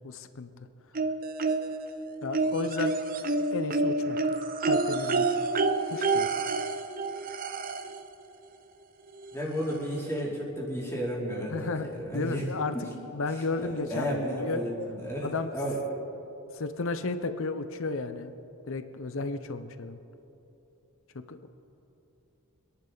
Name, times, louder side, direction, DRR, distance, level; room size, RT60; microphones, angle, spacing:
voice 1, 0.0-0.5 2.2-2.9 3.5-4.3 4.6-5.4 5.9-6.3 11.5-12.8 13.1-14.6 15.2-15.5 16.5-18.3 18.6-20.0 21.1-21.5, left 3 dB, 60° left, 10 dB, 0.7 m, -33 dB
sound 1, 0.9-1.9 2.3-8.0 9.2-9.3 9.7-9.8, right 3 dB, 40° right, 0.6 m, -28 dB
voice 2, 9.3-12.4 12.7-12.9 13.4-15.8, equal, 10° left, -5 dB, 2.8 m, -33 dB
26.5 x 11.0 x 4.0 m, 2.9 s
head